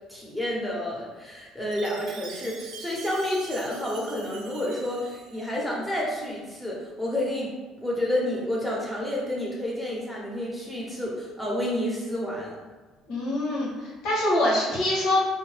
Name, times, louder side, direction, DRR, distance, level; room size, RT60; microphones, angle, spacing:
voice 1, 0.1-12.6, left 1 dB, 5° left, -4 dB, 0.8 m, -30 dB
Chime, 1.7-5.8, right 5 dB, 75° right, 0.4 m, -44 dB
voice 2, 13.1-15.2, left 1 dB, 70° left, -5 dB, 1.0 m, -24 dB
2.6 x 2.2 x 3.2 m, 1.3 s
cardioid pair, 115°, 0 cm